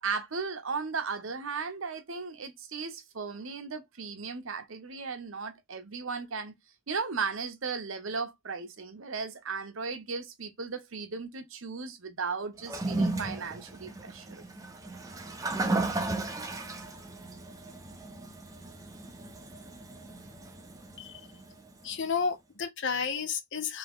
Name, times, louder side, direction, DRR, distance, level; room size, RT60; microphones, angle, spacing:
voice 1, 0.0-6.5 6.9-14.4, right 5 dB, 60° right, 0.8 m, -36 dB
Toilet flush, 12.6-21.9, right 2 dB, 15° right, 0.5 m, -35 dB
voice 2, 21.8-23.8, left 6 dB, 55° left, 0.6 m, -32 dB
3.5 x 2.9 x 3.6 m
head